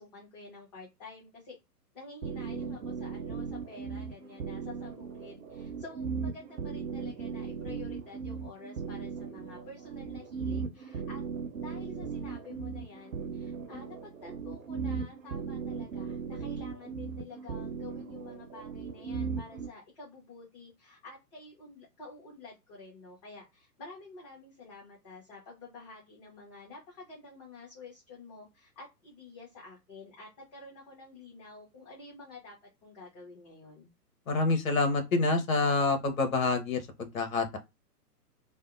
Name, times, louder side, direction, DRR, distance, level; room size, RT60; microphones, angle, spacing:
voice 1, 0.0-1.6 1.9-11.3 11.6-32.6 32.8-33.9, left 3 dB, 25° left, 0.8 m, -49 dB
sound 1, 2.2-19.7, right 5 dB, 55° right, 0.7 m, -37 dB
voice 2, 34.3-37.6, left 3 dB, 55° left, 0.8 m, -27 dB
2.6 x 2.0 x 2.5 m
figure-of-eight pair, 120°, 48 cm